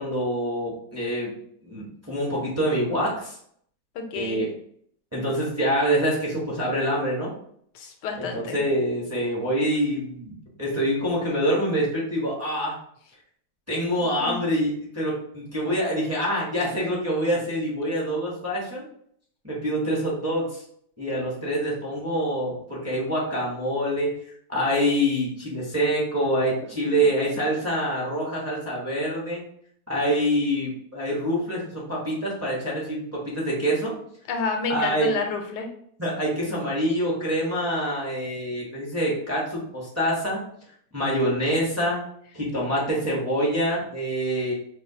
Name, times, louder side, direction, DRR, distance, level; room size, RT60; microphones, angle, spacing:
voice 1, 0.0-1.3 1.6-3.3 4.1-4.5 5.1-7.3 8.2-12.7 13.7-18.9 19.4-20.6 21.0-24.1 24.5-29.4 29.9-33.9 34.7-35.1 36.0-40.4 40.9-42.0 42.3-44.5, equal, 15° right, -6 dB, 0.6 m, -26 dB
voice 2, 3.9-4.4 7.7-8.6 14.2-14.4 26.8-26.9 34.3-35.7, left 4 dB, 85° left, 5 dB, 1.2 m, -29 dB
4.3 x 2.3 x 2.7 m, 0.65 s
omnidirectional pair, 1.8 m